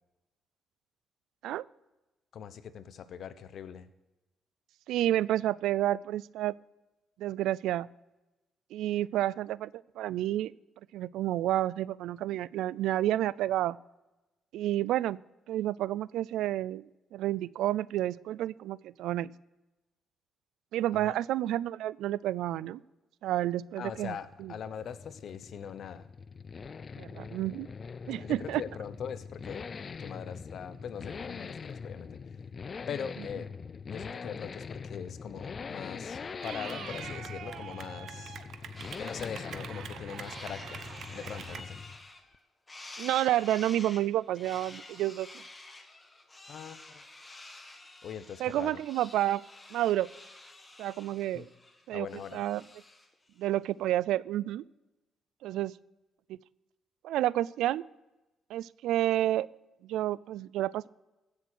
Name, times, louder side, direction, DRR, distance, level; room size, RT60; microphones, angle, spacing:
voice 1, 2.3-3.9 20.9-21.2 23.8-26.1 28.2-29.7 30.0-32.2 32.9-33.5 33.9-38.4 39.0-40.8 41.1-41.8 46.5-47.0 48.0-48.8 51.3-51.5 51.9-52.4, left 8 dB, 65° left, 13 dB, 0.9 m, -41 dB
voice 2, 4.9-6.5 7.2-7.9 8.7-10.5 10.9-13.8 14.5-15.2 15.5-16.8 17.1-19.3 20.7-22.8 23.2-24.1 24.4-24.5 27.0-27.7 28.1-28.6 43.0-45.3 48.4-49.4 49.7-50.1 50.8-51.5 51.9-52.1 52.3-52.6 53.4-54.6 55.4-55.7 56.3-56.4 57.0-57.8 58.5-59.5 59.8-60.9, right 13 dB, 85° right, 22 dB, 0.3 m, -30 dB
Accelerating revving vroom, 24.0-42.1 42.3-42.4, left 5 dB, 40° left, 0.4 m, -43 dB
Clapping / Cheering, 36.4-41.6, right 7 dB, 65° right, 1.0 m, -44 dB
sound 1, 38.7-39.3 39.7-42.4 42.7-53.1, left 2 dB, 20° left, 1.8 m, -50 dB
16.0 x 6.8 x 6.3 m, 1.0 s
cardioid pair, 90°, 0 cm